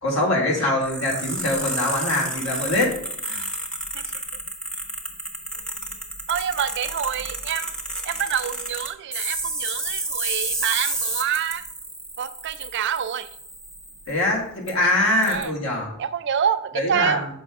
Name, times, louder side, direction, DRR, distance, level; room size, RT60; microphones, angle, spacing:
voice 1, 0.0-2.9 3.2-3.4 14.1-15.9 16.7-17.3, left 1 dB, 70° left, -2 dB, 1.9 m, -23 dB
sound 1, 0.8-14.2 14.7-14.8 15.2-15.4, right 1 dB, 5° left, 0.8 m, -31 dB
voice 2, 6.3-7.7 8.0-11.6 12.2-13.3 15.3-15.5 16.0-17.3, right 8 dB, 55° right, 12 dB, 0.4 m, -27 dB
6.7 x 4.9 x 3.5 m, 0.73 s
head